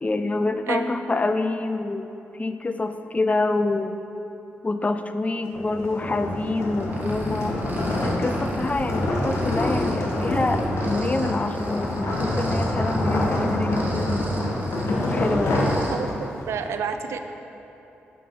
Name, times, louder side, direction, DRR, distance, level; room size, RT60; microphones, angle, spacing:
voice 1, 0.0-2.1 2.4-4.0 4.6-7.5 8.0-14.2 15.1-15.6, left 2 dB, 30° left, 9 dB, 0.4 m, -26 dB
sound 1, 5.5-16.4, left 1 dB, 70° left, 1.2 m, -26 dB
sound 2, 6.8-15.9, right 1 dB, 40° right, 1.5 m, -35 dB
voice 2, 15.9-17.2, right 6 dB, 75° right, 7 dB, 0.4 m, -30 dB
8.1 x 4.6 x 4.6 m, 3.0 s
supercardioid pair, 50°, 5 cm